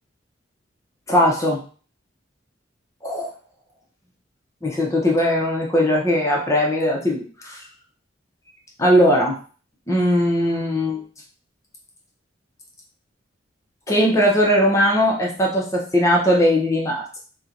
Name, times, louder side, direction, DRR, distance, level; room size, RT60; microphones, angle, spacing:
voice 1, 1.1-1.6 3.0-3.3 4.6-7.6 8.8-9.4 9.9-11.0 13.9-17.2, equal, 15° left, -2 dB, 0.6 m, -19 dB
4.2 x 2.2 x 2.5 m, 0.39 s
head